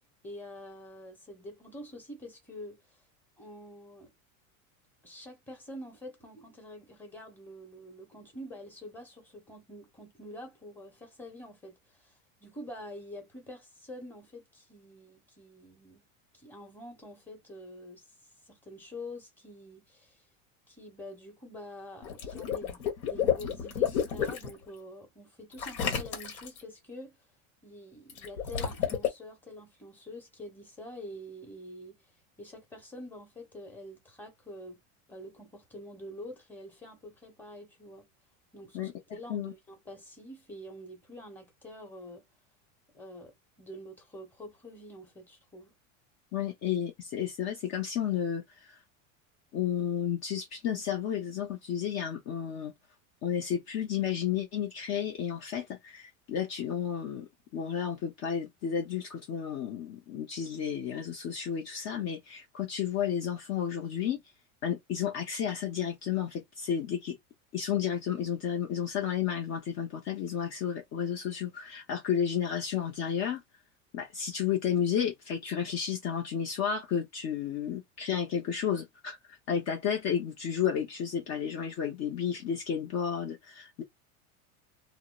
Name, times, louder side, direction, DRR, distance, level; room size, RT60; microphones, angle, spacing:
voice 1, 0.2-2.8 3.4-4.1 5.0-12.1 12.4-16.0 16.3-18.1 18.4-20.2 20.7-27.2 27.6-32.0 32.4-34.8 35.1-38.1 38.5-42.3 42.9-45.7, left 1 dB, 5° left, 1.0 m, -46 dB
Water / Liquid, 22.0-24.5 25.6-26.6 28.1-29.1, left 8 dB, 85° left, 1.1 m, -30 dB
voice 2, 46.3-48.8 49.5-52.7 53.2-57.3 57.5-64.2 64.6-67.2 67.5-73.4 73.9-83.8, left 8 dB, 40° left, 0.6 m, -32 dB
2.7 x 2.0 x 2.3 m
supercardioid pair, 120°, 41 cm